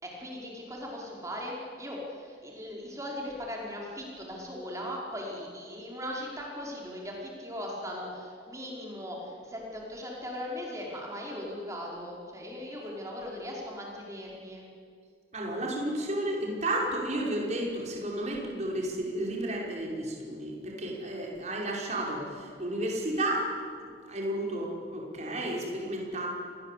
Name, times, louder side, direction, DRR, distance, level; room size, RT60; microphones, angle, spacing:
voice 1, 0.0-14.7, left 1 dB, 15° right, -2 dB, 5.2 m, -39 dB
voice 2, 15.3-23.5 24.1-26.3, right 1 dB, 35° right, -2 dB, 5.6 m, -32 dB
29.5 x 21.0 x 8.6 m, 2.2 s
head